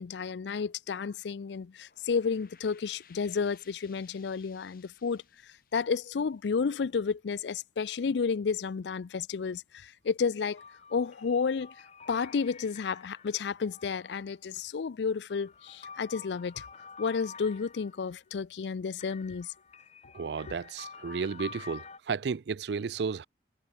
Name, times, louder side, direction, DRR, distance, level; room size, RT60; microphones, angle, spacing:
voice 1, 0.0-10.6 10.9-11.7 12.1-16.7 17.0-19.5, left 5 dB, 75° left, 0.4 m, -31 dB
sound 1, 1.7-6.9, left 9 dB, 50° left, 2.8 m, -61 dB
sound 2, 10.6-14.3 15.1-18.2 19.0-22.0, left 5 dB, 35° left, 1.7 m, -49 dB
voice 2, 20.1-23.3, right 5 dB, 75° right, 0.4 m, -33 dB
head